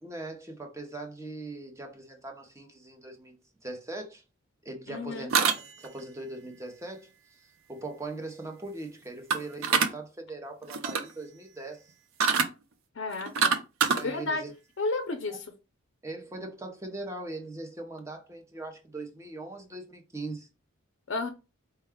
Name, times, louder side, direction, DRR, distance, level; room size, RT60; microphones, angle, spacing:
voice 1, 0.0-4.2 4.6-7.1 7.7-11.9 14.0-14.5 15.3-15.4 16.0-20.5, right 2 dB, 15° right, 0.6 m, -40 dB
voice 2, 4.9-5.3 12.9-13.5 14.0-14.4 14.8-15.5 21.1-21.3, left 3 dB, 60° left, 0.5 m, -32 dB
sound 1, 5.3-6.0 9.3-9.9 10.6-11.1 12.2-12.5 13.1-14.0, right 5 dB, 80° right, 0.5 m, -25 dB
4.5 x 2.2 x 3.5 m
head